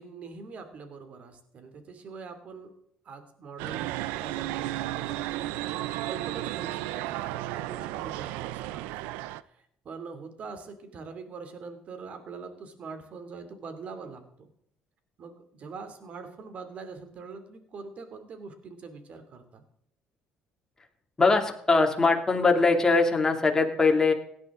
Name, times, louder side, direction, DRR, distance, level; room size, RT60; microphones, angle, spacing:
voice 1, 0.0-2.7 3.0-8.9 9.4-14.5 15.2-19.6, right 4 dB, 50° right, 8 dB, 2.8 m, -43 dB
sound 1, 3.6-9.4, right 15 dB, 85° right, 0.5 m, -33 dB
voice 2, 21.2-24.1, left 3 dB, 20° left, 2 dB, 2.7 m, -22 dB
17.0 x 11.0 x 3.8 m, 0.69 s
supercardioid pair, 90°, 3 cm